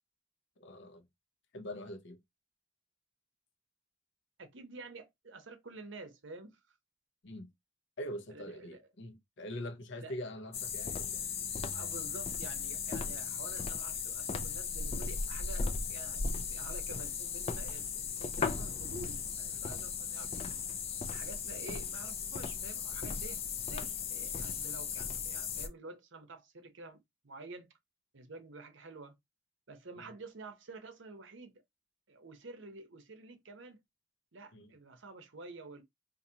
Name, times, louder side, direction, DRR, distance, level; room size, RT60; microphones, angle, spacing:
voice 1, 0.6-1.1 1.5-2.2 7.2-7.5 8.0-11.2 30.0-30.1 34.5-34.7, left 1 dB, 60° left, 0.7 m, -43 dB
voice 2, 4.4-6.6 8.3-8.8 10.0-10.1 11.7-16.2 16.5-20.6 21.1-27.7 28.1-29.1 29.7-31.6 32.1-33.8 34.3-35.8, right 3 dB, 60° right, 0.8 m, -49 dB
sound 1, 10.5-25.7, left 5 dB, 30° left, 0.4 m, -37 dB
4.1 x 2.6 x 2.7 m
head